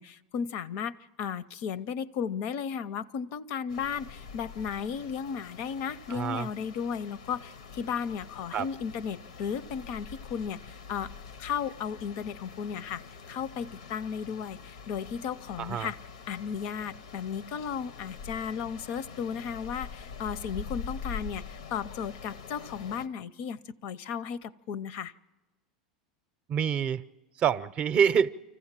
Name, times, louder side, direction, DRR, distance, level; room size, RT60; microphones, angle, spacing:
voice 1, 0.0-11.1 11.4-16.0 16.3-25.1, left 7 dB, 60° left, 18 dB, 0.6 m, -35 dB
sound 1, 3.7-23.1, left 5 dB, 90° left, 0.8 m, -45 dB
voice 2, 6.1-6.5 8.5-8.7 15.6-15.9 26.5-27.1 27.4-28.3, right 8 dB, 40° right, 14 dB, 0.6 m, -26 dB
25.5 x 15.0 x 7.4 m, 1.2 s
hypercardioid pair, 100°, 3 cm